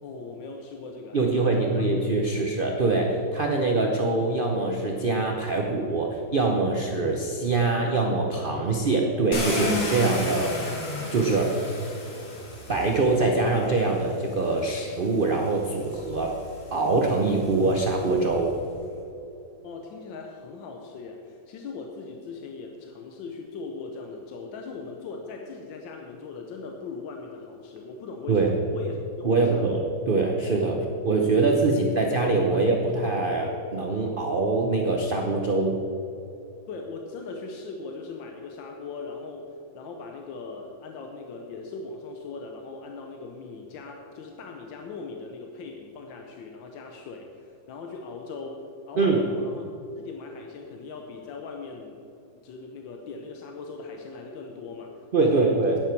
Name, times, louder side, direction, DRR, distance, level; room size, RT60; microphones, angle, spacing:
voice 1, 0.0-1.9 19.6-29.9 30.8-30.9 31.9-32.0 32.5-32.7 36.7-49.6 50.0-52.0 52.4-55.0 55.3-55.8, left 4 dB, 85° left, 2 dB, 1.6 m, -39 dB
voice 2, 1.1-10.7 11.1-11.6 12.7-16.3 16.7-18.5 28.3-28.5 29.2-30.8 31.0-35.8 49.0-49.3 55.1-55.8, right 3 dB, 50° right, 1 dB, 0.6 m, -24 dB
Car, 9.3-13.4 14.4-14.5 15.0-18.3, left 2 dB, 50° left, 2.2 m, -33 dB
10.5 x 9.8 x 4.6 m, 2.8 s
omnidirectional pair, 2.0 m